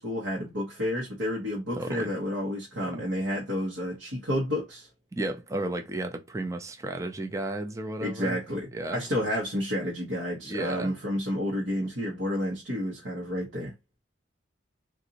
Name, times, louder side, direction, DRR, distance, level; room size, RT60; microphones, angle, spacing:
voice 1, 0.0-4.9 8.0-13.7, equal, 80° right, 1.1 m, -30 dB
voice 2, 1.7-2.1 2.8-3.0 5.1-8.4 8.7-9.0 10.4-10.9, right 2 dB, 15° right, 0.4 m, -33 dB
3.8 x 2.6 x 2.8 m
head